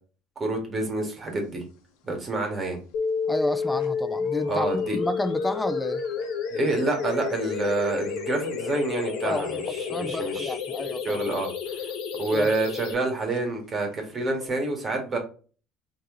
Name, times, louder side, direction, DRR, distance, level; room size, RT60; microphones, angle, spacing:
voice 1, 0.4-1.6 2.0-2.8 4.5-5.0 6.5-10.5 11.0-11.5 12.2-15.2, right 2 dB, 30° right, 1.9 m, -28 dB
sound 1, 1.2-1.7 2.0-2.1 2.3-2.5 3.0-3.1 3.3-14.5, left 6 dB, 85° left, 0.9 m, -43 dB
sound 2, 2.9-12.9, left 5 dB, 70° left, 1.3 m, -30 dB
voice 2, 3.3-6.0 9.2-11.2 12.3-12.5, left 1 dB, 10° left, 0.4 m, -31 dB
4.3 x 3.1 x 3.9 m
supercardioid pair, 105°, 0 cm